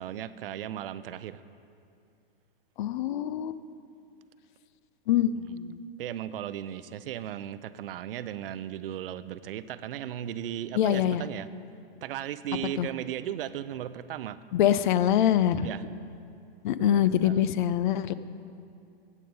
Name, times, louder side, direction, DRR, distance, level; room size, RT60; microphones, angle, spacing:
voice 1, 0.0-1.4 5.4-5.6 6.0-11.5 12.0-14.4 15.6-15.8 16.8-17.5, right 11 dB, 70° right, 14 dB, 0.6 m, -36 dB
voice 2, 2.8-3.6 5.1-5.8 10.7-11.2 12.8-12.9 14.5-15.7 16.6-18.1, left 11 dB, 55° left, 14 dB, 0.5 m, -24 dB
14.0 x 8.5 x 5.4 m, 2.5 s
hypercardioid pair, 150°, 30 cm